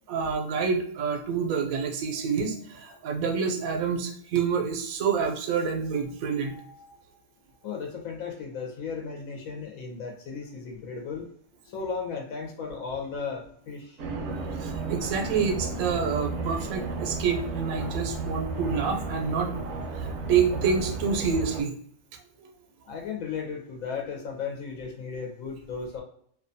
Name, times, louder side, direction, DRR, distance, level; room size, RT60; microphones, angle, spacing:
voice 1, 0.1-6.9 14.6-19.5 20.0-21.8, right 6 dB, 90° right, 3 dB, 1.1 m, -28 dB
voice 2, 7.6-11.3 11.6-14.0 22.8-26.0, left 5 dB, 90° left, 1 dB, 1.0 m, -35 dB
sound 1, 14.0-21.6, right 3 dB, 65° right, 0.7 m, -33 dB
2.6 x 2.2 x 2.6 m, 0.64 s
omnidirectional pair, 1.4 m